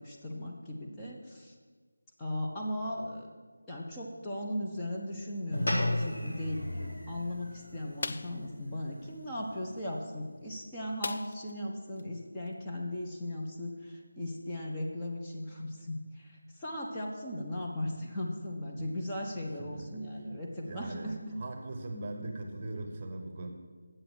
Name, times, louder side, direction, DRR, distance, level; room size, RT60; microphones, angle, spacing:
voice 1, 0.0-1.5 2.2-3.3 3.7-21.4, left 1 dB, 10° left, -4 dB, 0.9 m, -37 dB
sound 1, 5.5-10.1, left 1 dB, 70° left, 3.5 m, -36 dB
sound 2, 8.0-8.4 11.0-11.6 12.0-12.1 12.5-12.6, left 3 dB, 50° left, 0.4 m, -38 dB
voice 2, 19.6-20.0 20.7-23.5, right 2 dB, 30° right, 4 dB, 1.0 m, -40 dB
9.0 x 7.8 x 6.3 m, 1.5 s
figure-of-eight pair, 165°, 0 cm